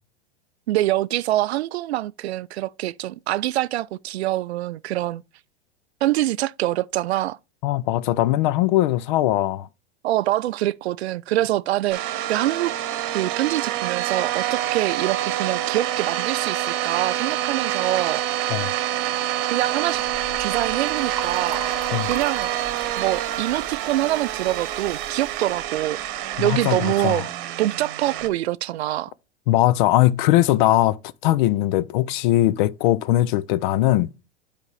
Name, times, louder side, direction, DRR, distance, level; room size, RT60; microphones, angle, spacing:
voice 1, 0.7-5.2 6.0-7.4 10.0-12.0 12.3-12.7 13.1-18.2 19.5-20.0 20.4-21.6 22.1-22.5 23.0-26.0 26.4-27.3 27.6-29.1, right 15 dB, 70° right, 0.5 m, -25 dB
voice 2, 7.6-9.7 18.5-18.7 21.9-22.1 26.4-27.2 29.5-31.0 31.2-34.1, left 15 dB, 50° left, 0.5 m, -20 dB
sound 1, 11.9-28.3, right 13 dB, 50° right, 1.1 m, -27 dB
Liquid, 19.9-26.6, right 5 dB, 10° right, 1.6 m, -39 dB
8.1 x 5.0 x 3.2 m
hypercardioid pair, 110°, 33 cm